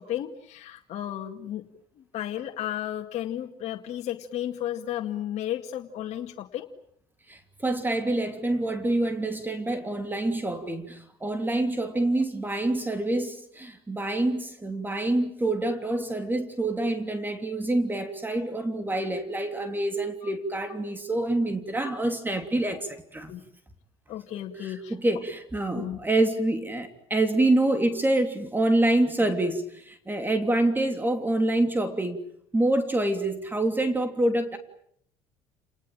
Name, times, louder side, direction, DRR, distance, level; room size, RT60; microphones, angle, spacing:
voice 1, 0.0-1.6 2.1-6.7 12.1-12.2 20.2-20.3 23.3-23.4 24.1-24.9 25.7-26.0, left 11 dB, 60° left, 1 dB, 2.2 m, -33 dB
voice 2, 7.3-23.3 24.6-32.2 32.5-34.6, right 1 dB, 15° right, 7 dB, 3.1 m, -26 dB
29.5 x 19.5 x 9.1 m, 0.71 s
supercardioid pair, 90°, 13 cm